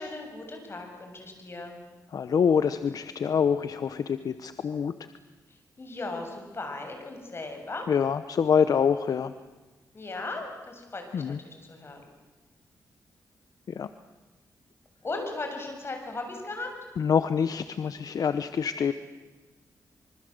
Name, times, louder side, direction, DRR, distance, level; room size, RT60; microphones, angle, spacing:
voice 1, 0.0-1.8 5.5-7.9 9.9-12.1 15.0-16.7, left 2 dB, 40° left, 4 dB, 7.2 m, -37 dB
voice 2, 2.1-4.9 7.9-9.3 11.1-11.4 13.7-13.9 17.0-18.9, left 7 dB, 70° left, 11 dB, 1.0 m, -25 dB
26.0 x 24.5 x 8.0 m, 1.2 s
cardioid pair, 85°, 7 cm